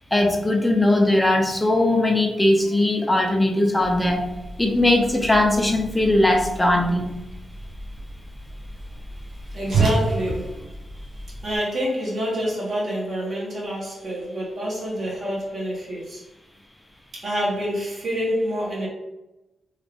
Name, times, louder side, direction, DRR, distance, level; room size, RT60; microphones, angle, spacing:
voice 1, 0.1-4.3 4.6-7.1, left 1 dB, 10° left, 2 dB, 0.5 m, -19 dB
Whoosh swoosh swish, 3.8-11.6, right 3 dB, 65° right, 1.0 m, -31 dB
voice 2, 9.5-10.6 11.4-16.2 17.1-18.9, equal, 45° right, -4 dB, 1.1 m, -27 dB
3.0 x 2.4 x 3.4 m, 0.99 s
wide cardioid pair, 140°, 0 cm